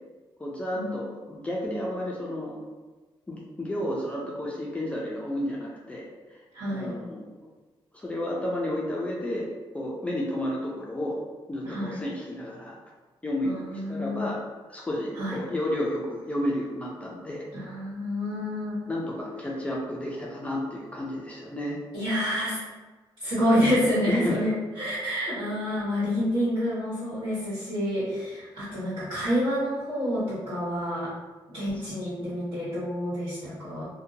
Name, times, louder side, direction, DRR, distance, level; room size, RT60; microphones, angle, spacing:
voice 1, 0.4-2.6 3.3-6.4 6.7-7.3 7.9-9.5 9.7-11.2 11.5-12.8 13.2-14.4 14.7-17.4 18.9-21.8 24.1-24.4 31.7-31.8, left 1 dB, 15° left, -4 dB, 0.3 m, -32 dB
voice 2, 6.5-6.9 11.6-12.0 13.4-14.2 15.1-15.4 17.5-18.8 21.9-22.6 23.2-31.1 31.5-33.8, equal, 55° right, -12 dB, 1.4 m, -28 dB
2.7 x 2.1 x 2.7 m, 1.3 s
wide cardioid pair, 140°, 9 cm